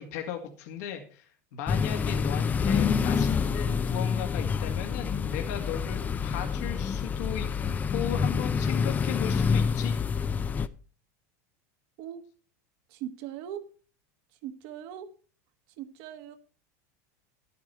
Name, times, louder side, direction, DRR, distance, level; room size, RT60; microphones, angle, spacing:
voice 1, 0.0-7.5 7.9-9.9, left 10 dB, 70° left, 3 dB, 2.1 m, -37 dB
sound 1, 1.7-10.7, left 6 dB, 20° left, 0.5 m, -27 dB
voice 2, 12.9-13.6 14.4-15.1 15.8-16.3, right 10 dB, 60° right, 9 dB, 1.4 m, -39 dB
11.0 x 9.2 x 4.3 m, 0.38 s
supercardioid pair, 135°, 9 cm